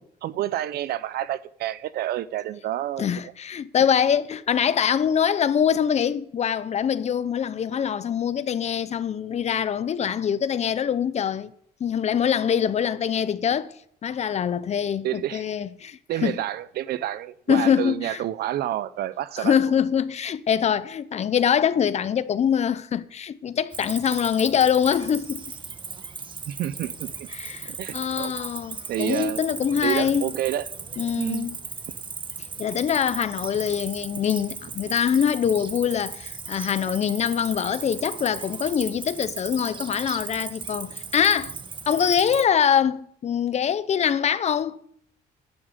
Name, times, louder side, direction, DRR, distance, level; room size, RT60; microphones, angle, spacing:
voice 1, 0.2-3.1 15.0-15.4 16.1-19.5 26.5-27.3 27.7-28.3 28.9-29.4 29.8-30.7 31.2-31.5, right 13 dB, 70° right, 0.7 m, -29 dB
voice 2, 3.0-11.5 11.8-16.4 17.5-18.2 19.4-25.4 27.3-30.3 31.0-31.6 32.6-41.5 41.9-44.8, left 8 dB, 40° left, 0.8 m, -24 dB
Cricket, 23.7-42.4, right 5 dB, 30° right, 1.4 m, -37 dB
11.5 x 7.5 x 8.2 m
cardioid pair, 110°, 17 cm